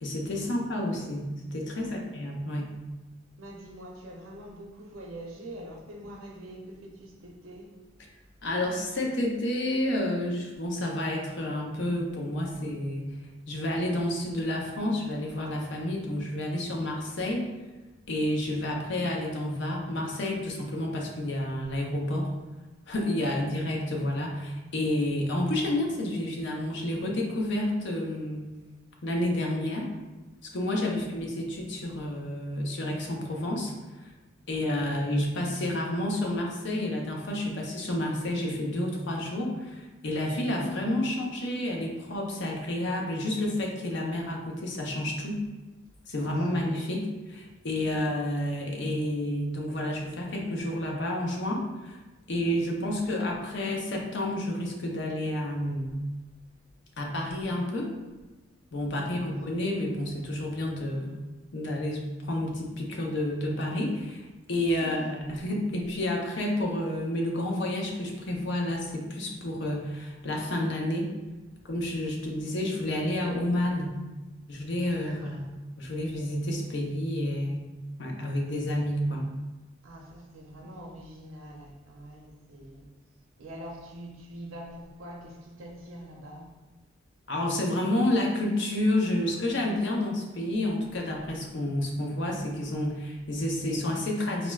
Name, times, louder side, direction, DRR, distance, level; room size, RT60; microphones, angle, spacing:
voice 1, 0.0-2.7 8.4-13.1 13.5-17.4 18.1-22.3 22.9-28.5 29.0-29.9 30.5-33.7 34.0-34.1 34.5-45.4 46.1-52.0 52.3-55.9 57.0-57.9 58.7-61.2 61.5-71.1 71.6-74.0 74.5-75.4 75.8-77.7 78.0-79.3 87.3-94.5, left 1 dB, 60° left, 0 dB, 0.6 m, -30 dB
voice 2, 3.4-7.7 18.9-19.0 23.2-23.6 30.8-31.3 34.5-35.0 46.4-46.7 47.8-48.0 58.9-59.5 64.7-65.1 75.0-75.5 79.8-82.9 83.4-86.5, right 1 dB, 90° right, 0 dB, 0.6 m, -44 dB
4.3 x 2.0 x 2.3 m, 1.2 s
head